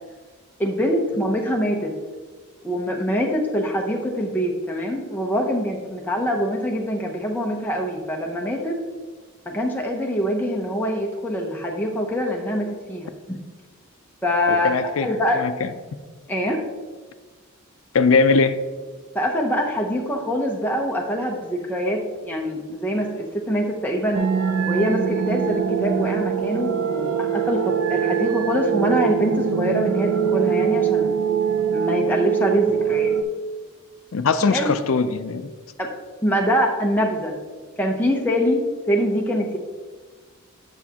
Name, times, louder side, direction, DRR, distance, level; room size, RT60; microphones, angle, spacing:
voice 1, 0.6-1.9 2.6-8.8 9.5-13.4 14.2-14.7 15.0-15.4 16.3-16.6 19.1-24.2 24.7-31.1 31.7-33.1 34.4-34.7 35.8-35.9 36.2-37.4 37.8-39.6, equal, 10° left, 0 dB, 0.7 m, -24 dB
voice 2, 14.5-15.1 15.4-15.7 17.9-18.6 34.1-35.5, left 4 dB, 70° left, 10 dB, 0.5 m, -20 dB
sound 1, 24.1-33.2, right 7 dB, 90° right, 0.5 m, -23 dB
8.3 x 7.0 x 2.9 m, 1.4 s
head